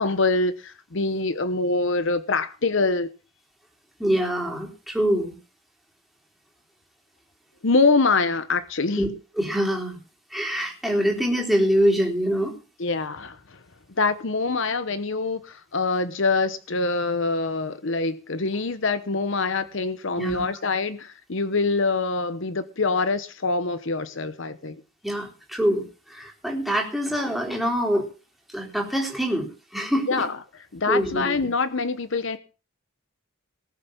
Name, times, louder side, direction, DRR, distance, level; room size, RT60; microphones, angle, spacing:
voice 1, 0.0-3.1 7.6-9.0 12.8-13.6 14.0-24.8 30.1-30.4 30.7-32.4, left 3 dB, 60° left, 0.9 m, -24 dB
voice 2, 4.0-5.4 9.0-9.1 9.4-10.0 10.3-12.6 20.2-20.5 25.0-28.1 28.5-30.2 30.9-31.4, equal, ahead, 3.6 m, -25 dB
19.0 x 6.8 x 7.1 m
head